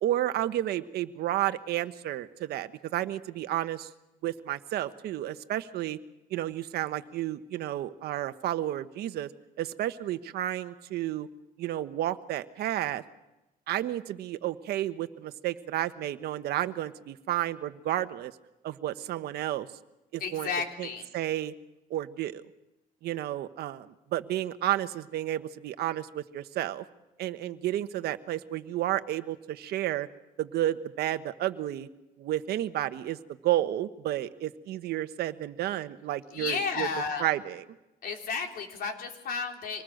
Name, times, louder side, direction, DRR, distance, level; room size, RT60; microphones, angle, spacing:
voice 1, 0.0-3.9 4.2-6.0 6.3-9.3 9.6-11.3 11.6-13.0 13.7-18.3 18.6-19.7 20.1-20.5 20.8-21.5 21.9-22.4 23.0-26.8 27.2-30.1 30.4-31.9 32.2-33.2 33.4-36.9 37.2-37.6, right 13 dB, 70° right, 10 dB, 1.2 m, -31 dB
voice 2, 20.2-21.1 36.3-37.3 38.0-39.8, left 5 dB, 60° left, 3 dB, 3.6 m, -32 dB
25.5 x 20.0 x 6.6 m, 0.96 s
cardioid pair, 110°, 17 cm